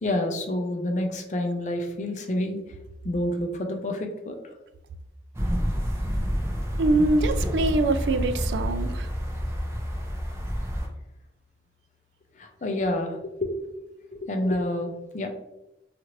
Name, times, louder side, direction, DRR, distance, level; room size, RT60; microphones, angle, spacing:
voice 1, 0.0-2.6 3.0-4.4 12.3-13.5 14.1-15.3, left 1 dB, 45° left, 4 dB, 0.4 m, -28 dB
sound 1, 5.3-10.9, equal, 15° right, 0.4 m, -28 dB
voice 2, 6.8-9.1, right 2 dB, 80° right, 9 dB, 0.3 m, -24 dB
2.8 x 2.5 x 2.9 m, 0.89 s
head